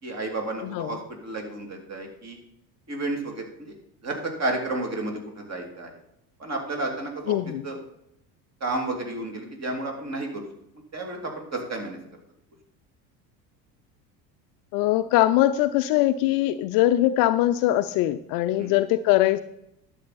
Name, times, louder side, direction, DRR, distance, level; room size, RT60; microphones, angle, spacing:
voice 1, 0.0-2.4 2.9-3.7 4.0-5.9 6.4-7.4 7.6-7.8 8.6-10.4 10.9-12.0 18.6-18.7, right 2 dB, 30° right, 2 dB, 2.8 m, -31 dB
voice 2, 0.6-1.0 7.3-7.6 14.7-19.4, left 14 dB, 45° left, 12 dB, 0.5 m, -22 dB
11.5 x 7.5 x 4.1 m, 0.78 s
hypercardioid pair, 70°, 50 cm